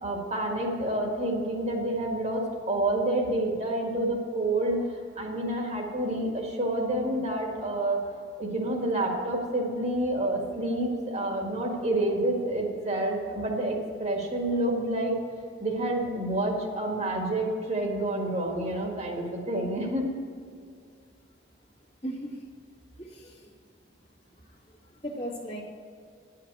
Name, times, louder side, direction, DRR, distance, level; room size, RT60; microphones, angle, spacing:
voice 1, 0.0-4.8 5.2-8.0 8.4-15.2 15.6-20.1, right 1 dB, 35° right, 0 dB, 1.8 m, -28 dB
voice 2, 22.0-22.3 23.1-23.5 25.0-25.6, equal, 35° left, -3 dB, 2.0 m, -36 dB
11.0 x 5.8 x 8.8 m, 2.3 s
head